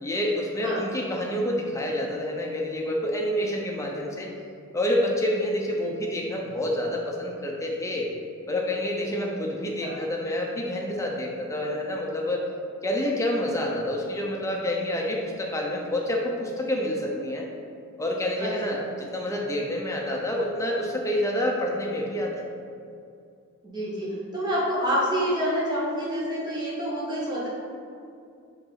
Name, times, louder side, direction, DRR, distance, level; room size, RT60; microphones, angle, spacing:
voice 1, 0.0-4.3 4.7-8.1 8.5-12.5 12.8-17.4 18.0-22.5, left 1 dB, 15° left, -2 dB, 0.7 m, -28 dB
voice 2, 9.0-9.4 9.8-9.9 18.4-18.8 23.6-27.5, equal, 20° right, -7 dB, 1.5 m, -28 dB
5.4 x 3.9 x 5.7 m, 2.4 s
head